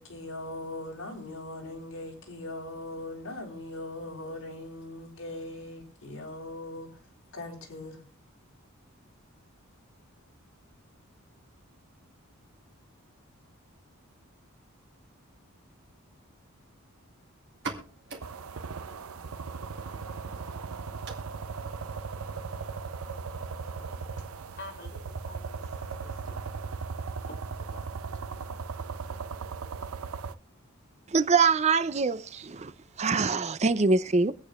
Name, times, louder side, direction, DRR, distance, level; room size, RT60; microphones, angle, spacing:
voice 1, 0.0-6.9 7.3-8.0, left 2 dB, 75° left, 3.9 m, -40 dB
sound 1, 17.5-24.9, right 3 dB, 55° right, 2.4 m, -47 dB
sound 2, 18.2-30.4, right 5 dB, 80° right, 0.6 m, -37 dB
voice 2, 24.6-26.5 27.2-28.2 29.0-29.1, left 1 dB, 50° left, 2.9 m, -48 dB
voice 3, 31.1-32.7 33.0-34.3, right 4 dB, 30° right, 0.5 m, -24 dB
24.0 x 8.5 x 2.4 m
head